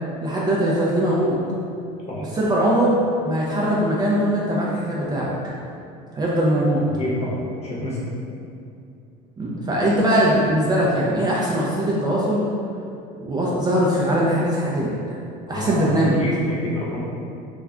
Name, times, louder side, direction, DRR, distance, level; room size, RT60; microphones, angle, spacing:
voice 1, 0.2-1.4 2.4-2.9 3.2-5.3 6.1-6.8 9.4-12.5 13.2-15.2 15.5-16.3, right 1 dB, 20° right, -5 dB, 0.4 m, -21 dB
voice 2, 6.8-8.1 15.5-17.0, left 1 dB, 35° left, -5 dB, 0.8 m, -28 dB
2.4 x 2.1 x 3.5 m, 2.5 s
supercardioid pair, 110°, 19 cm